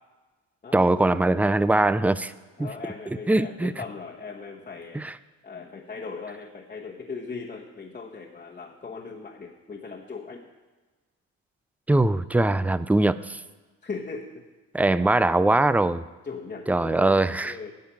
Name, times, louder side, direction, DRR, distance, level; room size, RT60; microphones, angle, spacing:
voice 1, 0.7-2.3 2.6-2.7 3.3-3.7 4.9-5.1 11.9-13.4 14.7-16.0 16.7-17.5, right 2 dB, 5° right, 15 dB, 0.3 m, -21 dB
voice 2, 2.6-5.0 5.4-10.5 13.8-14.4 16.2-17.7, left 4 dB, 25° left, -3 dB, 1.2 m, -38 dB
10.5 x 5.8 x 8.5 m, 1.3 s
cardioid pair, 90°, 30 cm